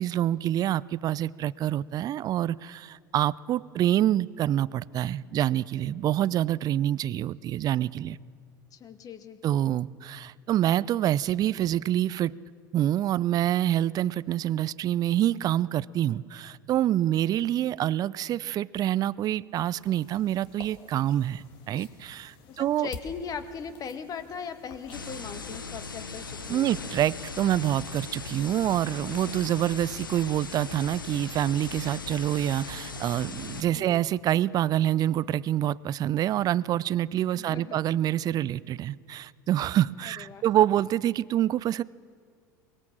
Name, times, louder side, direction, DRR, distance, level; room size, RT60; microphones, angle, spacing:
voice 1, 0.0-8.2 9.4-12.3 12.7-22.9 26.5-41.8, right 12 dB, 35° right, 0.5 m, -26 dB
voice 2, 8.7-9.4 22.5-26.7 33.6-34.0 37.3-37.8 40.0-40.6, left 6 dB, 35° left, 1.7 m, -39 dB
sound 1, 19.8-25.2, left 5 dB, 50° left, 1.9 m, -49 dB
sound 2, 24.9-33.6, left 4 dB, 85° left, 1.0 m, -38 dB
23.5 x 21.0 x 7.5 m
figure-of-eight pair, 75°, 11 cm